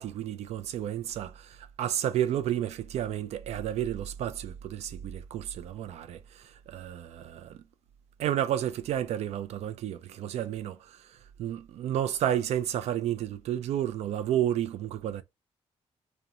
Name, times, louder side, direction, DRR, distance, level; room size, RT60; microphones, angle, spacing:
voice 1, 0.0-7.6 8.2-15.2, right 11 dB, 75° right, 0.4 m, -31 dB
2.8 x 2.1 x 2.4 m
wide cardioid pair, 180°, 11 cm